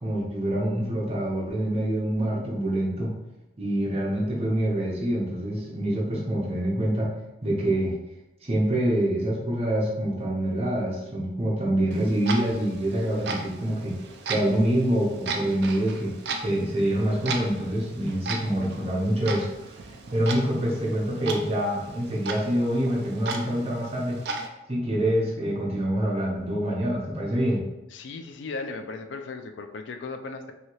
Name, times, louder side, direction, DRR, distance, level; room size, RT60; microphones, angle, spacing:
voice 1, 0.0-3.1 3.6-7.1 7.4-7.9 8.4-14.0 14.2-16.1 16.4-24.2 24.7-27.6, right 1 dB, 35° right, -4 dB, 0.8 m, -26 dB
Clock, 11.9-24.5, right 3 dB, 65° right, 0.4 m, -36 dB
voice 2, 27.9-30.5, left 3 dB, 85° left, 7 dB, 0.4 m, -36 dB
2.8 x 2.7 x 3.0 m, 0.94 s
head